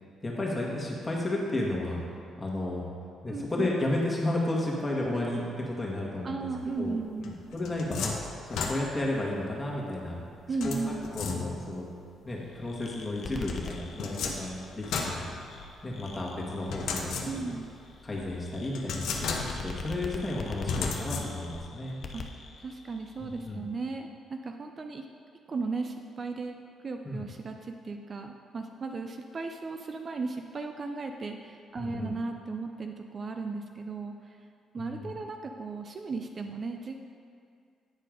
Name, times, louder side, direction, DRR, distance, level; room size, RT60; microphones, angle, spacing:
voice 1, 0.2-2.8 3.2-6.5 6.8-7.0 7.5-10.2 10.6-11.8 12.2-15.3 15.8-17.5 18.0-22.0 23.2-23.6 27.0-27.2 31.7-32.1 34.8-35.1, left 1 dB, 20° left, -3 dB, 1.7 m, -33 dB
voice 2, 3.3-3.7 6.2-7.4 10.5-11.2 17.3-17.7 22.1-22.2 22.6-25.0 25.5-26.6 26.8-34.4 34.7-37.0, right 4 dB, 40° right, 5 dB, 0.4 m, -36 dB
sound 1, 7.2-9.2 10.6-11.8 13.4-15.9 16.7-17.7 18.1-18.2 18.7-19.8 20.7-21.7, left 4 dB, 80° left, 0.8 m, -34 dB
sound 2, 12.3-23.5, left 4 dB, 50° left, 0.7 m, -44 dB
9.1 x 4.5 x 5.1 m, 2.3 s
cardioid pair, 90°, 0 cm